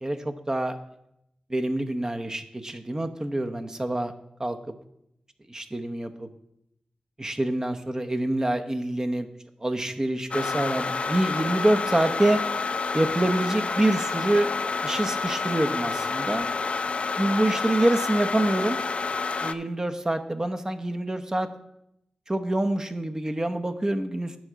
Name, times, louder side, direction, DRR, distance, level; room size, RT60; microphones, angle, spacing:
voice 1, 0.0-0.8 1.5-4.1 4.4-4.7 5.5-6.3 7.2-9.3 9.6-12.4 12.9-14.5 14.8-16.5 17.2-18.8 19.4-21.5 22.3-24.4, right 1 dB, 25° right, 7 dB, 0.9 m, -26 dB
sound 1, 10.3-19.5, left 4 dB, 50° left, 0.4 m, -29 dB
10.5 x 4.6 x 6.2 m, 0.80 s
cardioid pair, 55°, 2 cm